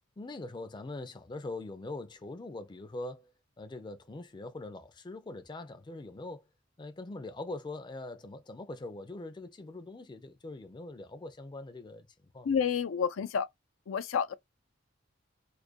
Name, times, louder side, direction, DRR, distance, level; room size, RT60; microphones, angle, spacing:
voice 1, 0.2-3.3 3.6-6.4 6.8-12.1 12.3-12.5, left 2 dB, 25° left, 0.4 m, -42 dB
voice 2, 12.4-13.5 13.9-14.3, left 7 dB, 80° left, 0.4 m, -29 dB
2.4 x 2.2 x 2.4 m
head